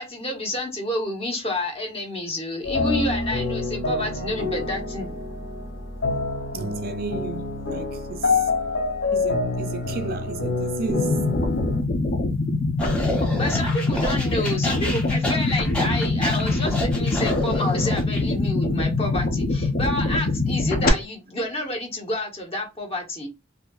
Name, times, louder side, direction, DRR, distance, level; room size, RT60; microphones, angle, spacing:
voice 1, 0.0-5.1 13.4-23.3, left 1 dB, 30° left, 1.0 m, -29 dB
sound 1, 2.6-11.8, left 3 dB, 75° left, 2.1 m, -27 dB
voice 2, 6.5-8.5 9.1-11.2, right 4 dB, 50° right, 0.4 m, -33 dB
sound 2, 10.9-20.9, left 2 dB, 45° left, 0.6 m, -24 dB
sound 3, 12.8-18.2, left 1 dB, 5° left, 1.2 m, -30 dB
4.1 x 2.6 x 2.3 m
head